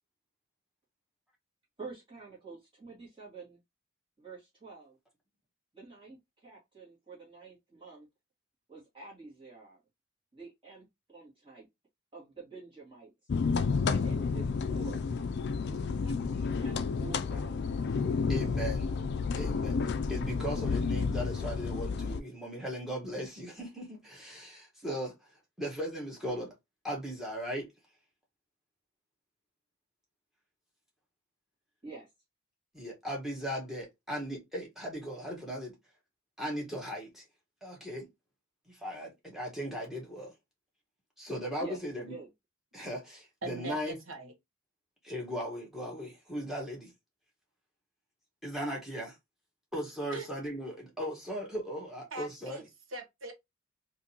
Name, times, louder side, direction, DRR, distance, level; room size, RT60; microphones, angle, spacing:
voice 1, 1.8-3.6 4.2-5.0 5.7-8.1 8.7-9.8 10.3-11.7 12.1-13.1 13.9-15.1 15.7-17.9 31.8-32.1 41.6-42.3, right 4 dB, 25° right, 1.8 m, -48 dB
sound 1, 13.3-22.2, left 5 dB, 50° left, 0.3 m, -31 dB
voice 2, 18.3-18.9 19.3-25.1 25.6-26.5 26.8-27.7 32.7-35.8 36.4-37.2 37.6-38.1 38.7-40.3 41.2-42.1 42.7-44.0 45.0-46.9 48.4-49.1 49.7-52.6, equal, ahead, 1.4 m, -38 dB
voice 3, 43.4-44.3 50.1-50.3 52.1-52.6 52.9-53.3, right 2 dB, 65° right, 1.0 m, -41 dB
3.6 x 2.7 x 2.8 m
head